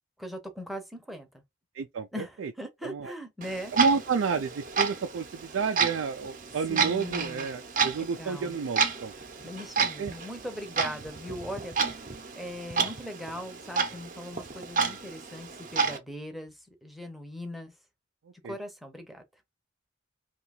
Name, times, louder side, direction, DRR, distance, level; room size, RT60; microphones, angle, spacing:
voice 1, 0.2-1.4 2.1-3.7 6.7-7.5 8.0-8.5 9.4-11.8 12.4-16.5 16.8-17.7 18.4-19.2, equal, ahead, 0.7 m, -40 dB
voice 2, 1.7-2.5 2.8-3.1 3.7-9.1 10.0-10.1 18.4-18.5, right 5 dB, 80° right, 0.4 m, -30 dB
Clock, 3.4-16.0, right 5 dB, 45° right, 0.7 m, -31 dB
2.8 x 2.4 x 4.1 m
head